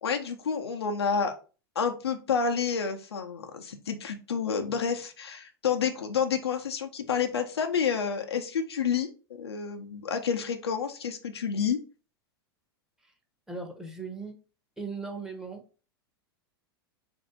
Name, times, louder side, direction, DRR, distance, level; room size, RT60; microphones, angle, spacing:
voice 1, 0.0-1.4 1.8-9.1 9.4-11.8, left 6 dB, 85° left, 5 dB, 0.6 m, -29 dB
voice 2, 13.5-14.4 14.8-15.8, right 4 dB, 5° right, 3 dB, 0.8 m, -38 dB
3.2 x 2.6 x 3.8 m, 0.35 s
hypercardioid pair, 100°, 13 cm